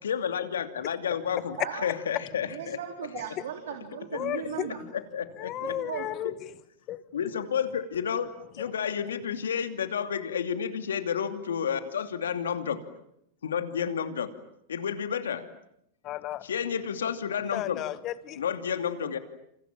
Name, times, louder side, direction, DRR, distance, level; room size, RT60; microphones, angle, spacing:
voice 1, 0.0-2.8 4.1-4.2 4.9-5.7 6.2-6.3 7.1-8.3 8.5-12.8 13.4-14.3 14.7-15.5 16.4-17.8 18.4-19.2, left 7 dB, 85° left, 9 dB, 2.7 m, -31 dB
voice 2, 1.6-1.9 2.4-4.8 5.6-6.1, right 9 dB, 75° right, 4 dB, 3.9 m, -37 dB
voice 3, 4.1-4.7 5.4-6.3 6.9-7.0 16.0-16.4 17.5-18.4, left 14 dB, 40° left, 15 dB, 1.6 m, -34 dB
28.0 x 28.0 x 7.5 m, 0.76 s
hypercardioid pair, 105°, 0 cm